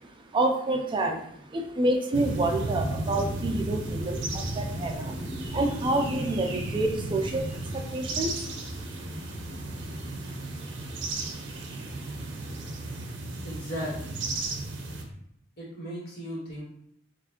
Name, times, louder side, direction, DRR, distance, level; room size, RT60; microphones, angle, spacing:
voice 1, 0.3-1.2 1.5-5.1 5.5-7.4 7.9-8.3, right 2 dB, 25° right, 4 dB, 0.4 m, -27 dB
sound 1, 2.1-15.0, right 2 dB, 70° right, 0.6 m, -34 dB
voice 2, 13.4-14.2 15.6-16.6, equal, 60° left, -5 dB, 1.4 m, -36 dB
4.3 x 2.5 x 2.8 m, 0.70 s
head